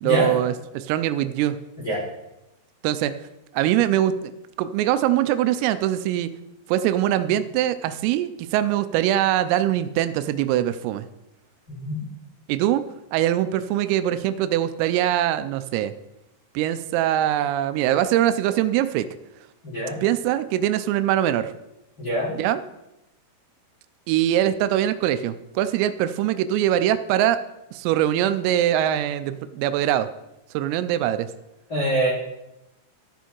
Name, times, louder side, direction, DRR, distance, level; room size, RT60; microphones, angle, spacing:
voice 1, 0.0-1.6 2.8-3.2 3.5-4.3 4.6-6.3 6.7-11.1 12.5-12.8 13.1-15.9 16.5-19.1 20.0-21.5 22.3-22.6 24.1-27.4 27.7-30.1 30.5-31.3, right 12 dB, 90° right, 12 dB, 3.2 m, -22 dB
voice 2, 19.6-20.0 22.0-22.3 31.7-32.1, right 1 dB, 25° left, -7 dB, 2.6 m, -24 dB
13.5 x 7.1 x 4.5 m, 0.92 s
omnidirectional pair, 5.9 m